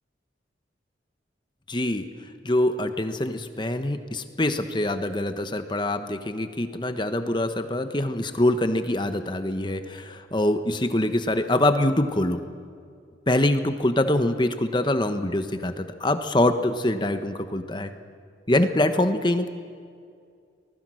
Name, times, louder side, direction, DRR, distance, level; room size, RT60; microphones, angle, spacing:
voice 1, 1.7-2.1 2.4-12.4 13.3-17.9 18.5-19.5, left 1 dB, 25° left, 8 dB, 1.2 m, -24 dB
24.5 x 20.0 x 6.4 m, 2.3 s
head